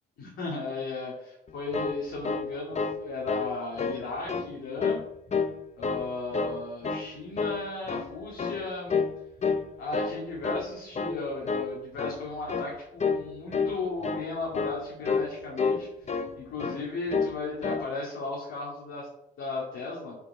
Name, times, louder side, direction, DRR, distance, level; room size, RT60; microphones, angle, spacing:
voice 1, 0.2-5.0 5.7-9.0 9.8-19.1 19.4-20.2, left 3 dB, 75° left, -5 dB, 2.3 m, -36 dB
sound 1, 1.5-3.0 3.3-3.5 3.8-4.5 4.8-5.6 5.8-6.6 6.8-7.1 7.4-8.1 8.4-8.6 8.9-9.2 9.4-10.2 10.4-10.7 11.0-11.2 11.5-11.7 12.0-12.2 12.5-12.7 13.0-13.3 13.5-13.8 14.0-14.3 14.5-14.8 15.1-15.3 15.6-16.3 16.6-16.8 17.1-17.4 17.6-17.9, left 5 dB, 35° left, 0.7 m, -29 dB
6.7 x 5.2 x 4.9 m, 0.82 s
cardioid pair, 90°, 20 cm